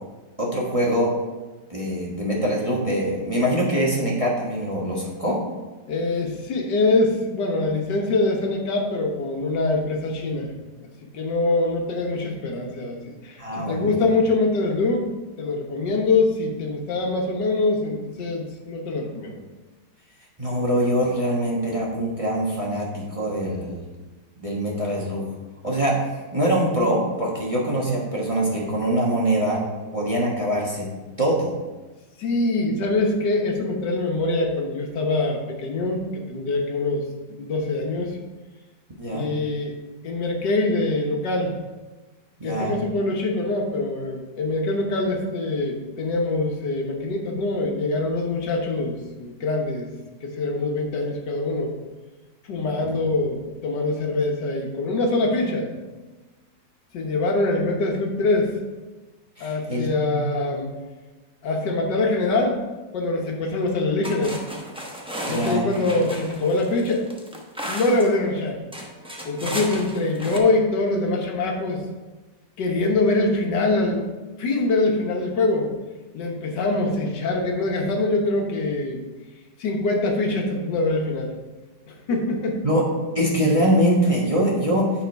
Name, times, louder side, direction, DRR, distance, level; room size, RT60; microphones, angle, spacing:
voice 1, 0.4-1.1 1.7-5.4 13.4-13.8 20.4-23.8 24.4-25.2 25.6-29.6 29.9-30.9 31.2-31.5 39.0-39.3 42.4-42.7 52.8-52.9 59.4-60.2 65.3-65.7 69.4-69.6 82.6-82.8 83.1-84.9, right 1 dB, 20° right, -4 dB, 1.2 m, -23 dB
voice 2, 5.9-10.5 11.1-15.1 15.4-19.3 32.2-38.2 39.1-39.7 40.0-41.5 42.4-49.9 50.2-51.7 52.5-55.7 56.9-58.6 59.4-60.7 61.4-62.6 62.9-64.4 65.2-67.1 67.6-68.6 69.2-71.8 72.6-74.0 74.4-75.7 76.1-79.0 79.6-81.3 81.9-82.6, left 2 dB, 80° left, 1 dB, 1.7 m, -24 dB
sound 1, 63.6-63.7 64.0-68.2 68.7-70.4, equal, 5° right, 0.4 m, -34 dB
9.5 x 4.2 x 4.6 m, 1.2 s
omnidirectional pair, 1.9 m